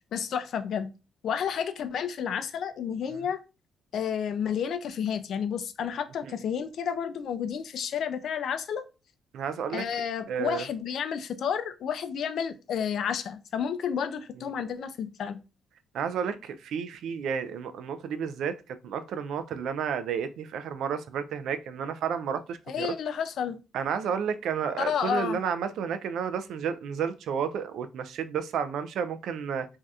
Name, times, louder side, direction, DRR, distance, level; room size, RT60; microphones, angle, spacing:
voice 1, 0.1-0.9 1.2-3.4 3.9-8.8 9.7-15.4 22.7-23.6 24.8-25.4, left 7 dB, 65° left, 0.4 m, -31 dB
voice 2, 9.3-9.8 10.3-10.6 14.4-14.5 15.9-18.6 18.8-22.9 23.7-29.7, right 7 dB, 75° right, 0.3 m, -31 dB
3.4 x 2.6 x 2.3 m
cardioid pair, 90°, 0 cm